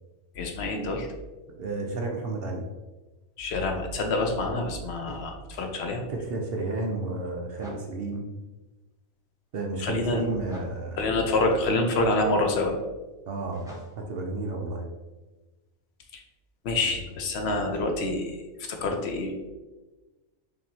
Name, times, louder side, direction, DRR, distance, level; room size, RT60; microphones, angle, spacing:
voice 1, 0.4-1.1 3.4-6.0 9.8-10.2 11.0-12.8 16.1-16.2 16.6-18.4 18.7-19.3, left 2 dB, 60° left, 3 dB, 0.8 m, -27 dB
voice 2, 1.6-2.6 6.1-8.2 9.5-11.1 13.3-13.6 14.0-14.9 16.8-16.9, right 2 dB, 60° right, 1 dB, 0.6 m, -32 dB
sound 1, 5.1-5.7 7.6-7.9 10.5-10.8 13.5-14.1, equal, 5° right, 0.7 m, -43 dB
5.2 x 2.8 x 2.8 m, 1.2 s
omnidirectional pair, 1.4 m